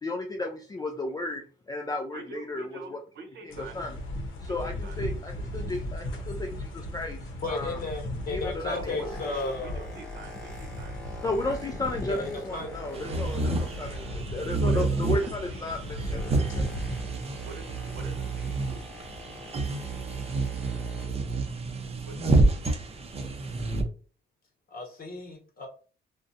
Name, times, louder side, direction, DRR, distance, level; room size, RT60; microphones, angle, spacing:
voice 1, 0.0-3.0 3.4-4.0 4.4-7.2 7.5-7.8 8.3-9.1 9.4-9.5 11.2-16.7 17.0-17.1, left 2 dB, 20° left, 3 dB, 0.3 m, -34 dB
voice 2, 2.1-3.8 4.5-5.0 8.6-9.1 9.6-11.0 14.6-15.7 17.4-17.7 17.9-18.5 22.0-22.6, right 3 dB, 65° right, 4 dB, 0.8 m, -44 dB
sound 1, 3.5-17.0, left 1 dB, 75° left, 0.7 m, -37 dB
voice 3, 7.4-9.9 12.1-12.7 24.7-25.7, left 3 dB, 45° left, 2 dB, 0.9 m, -34 dB
Boat Water vehicle, 8.6-14.6 14.9-21.3 22.0-22.1, equal, 5° left, 0.9 m, -46 dB
sound 2, 12.9-23.8, right 3 dB, 30° right, 0.5 m, -29 dB
2.6 x 2.1 x 2.6 m, 0.40 s
cardioid pair, 90°, 20 cm